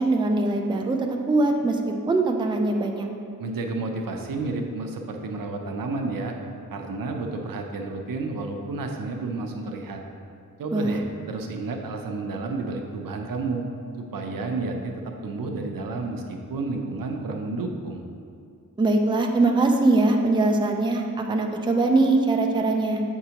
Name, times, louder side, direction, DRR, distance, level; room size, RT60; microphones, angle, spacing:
voice 1, 0.0-1.8 2.1-3.1 10.7-11.0 18.8-23.0, right 2 dB, 15° right, 3 dB, 0.4 m, -22 dB
voice 2, 3.4-6.3 6.7-10.0 10.6-11.0 11.3-13.6 14.0-18.0, right 3 dB, 85° right, 3 dB, 0.7 m, -31 dB
7.7 x 4.7 x 2.9 m, 2.3 s
wide cardioid pair, 125°, 33 cm